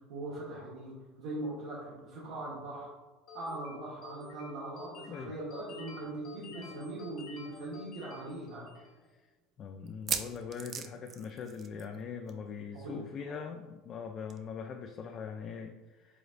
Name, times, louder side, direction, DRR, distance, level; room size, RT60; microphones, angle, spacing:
voice 1, 0.1-2.9 3.3-8.7 12.7-13.4, right 2 dB, 75° right, -7 dB, 1.1 m, -41 dB
sound 1, 3.3-9.0, left 4 dB, 60° left, 0.7 m, -49 dB
sound 2, 7.2-7.3 7.6-7.7 8.3-8.4 9.9-12.0 12.3-12.5 12.7-12.8 14.3-14.4, right 7 dB, 40° right, 0.4 m, -38 dB
voice 2, 9.6-16.2, left 6 dB, 40° left, 4 dB, 0.3 m, -42 dB
4.9 x 3.8 x 2.5 m, 1.3 s
supercardioid pair, 105°, 0 cm